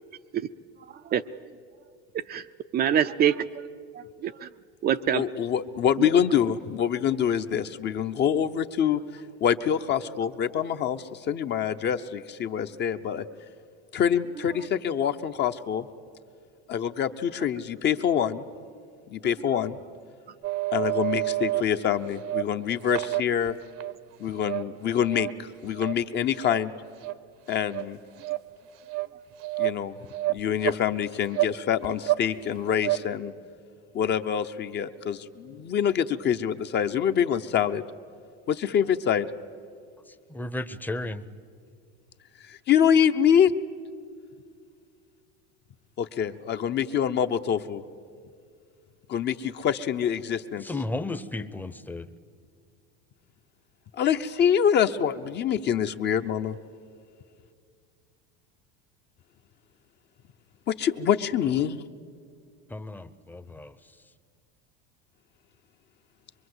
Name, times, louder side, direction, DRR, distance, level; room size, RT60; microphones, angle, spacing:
voice 1, 2.1-2.4 2.7-3.6 3.9-4.5 4.8-5.2, right 9 dB, 30° right, 9 dB, 0.5 m, -25 dB
voice 2, 5.1-9.0 9.4-13.2 13.9-15.9 16.7-18.4 19.1-19.8 20.7-23.6 24.2-26.7 27.5-28.0 29.6-29.9 30.3-33.3 33.9-37.8 38.5-39.3 42.5-43.5 46.0-47.8 49.1-50.6 53.9-56.6 60.7-61.8, left 8 dB, 35° left, 9 dB, 0.8 m, -25 dB
sound 1, 20.4-21.6 22.1-22.4 22.8-23.9 24.4-24.6 25.0-25.3 25.8-25.9 26.4-26.6 27.0-27.1 27.5-27.9 28.2-28.4 28.9-29.1 29.4-29.8 30.1-30.8 31.3-31.6 31.8-32.2 32.6-33.0, right 18 dB, 50° right, 0.8 m, -28 dB
voice 3, 40.1-41.3 50.6-52.1 62.7-64.0, left 2 dB, 5° left, 12 dB, 0.7 m, -34 dB
24.0 x 23.5 x 8.0 m, 2.2 s
supercardioid pair, 125°, 30 cm